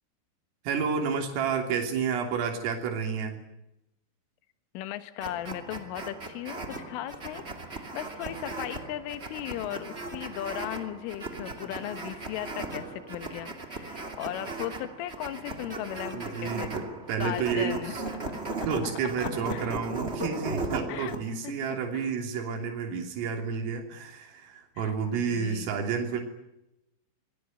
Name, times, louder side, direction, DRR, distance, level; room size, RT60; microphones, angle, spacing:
voice 1, 0.7-3.4 16.1-18.0 18.7-26.2, right 6 dB, 80° right, 3 dB, 5.8 m, -30 dB
voice 2, 4.8-16.7 17.2-18.0 18.3-18.5 19.2-19.7 20.9-21.2 21.4-21.6 21.9-22.1 24.8-25.8, left 13 dB, 80° left, 11 dB, 3.9 m, -37 dB
sound 1, 5.2-21.2, right 3 dB, 25° right, 1.2 m, -37 dB
26.5 x 22.5 x 9.1 m, 0.87 s
omnidirectional pair, 5.8 m